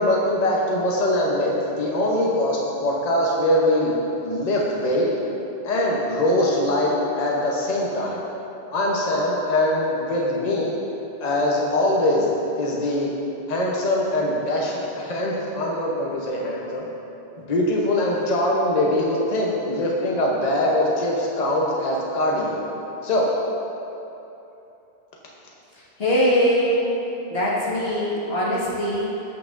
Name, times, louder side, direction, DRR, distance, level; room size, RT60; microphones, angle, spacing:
voice 1, 0.0-4.0 4.2-5.1 5.6-8.2 8.7-10.7 11.2-13.1 13.5-16.8 17.5-22.6 23.0-23.3, left 1 dB, 45° left, -4 dB, 0.9 m, -22 dB
voice 2, 25.7-26.9 27.3-29.1, equal, 70° left, -7 dB, 1.9 m, -22 dB
14.0 x 5.8 x 2.5 m, 3.0 s
omnidirectional pair, 1.0 m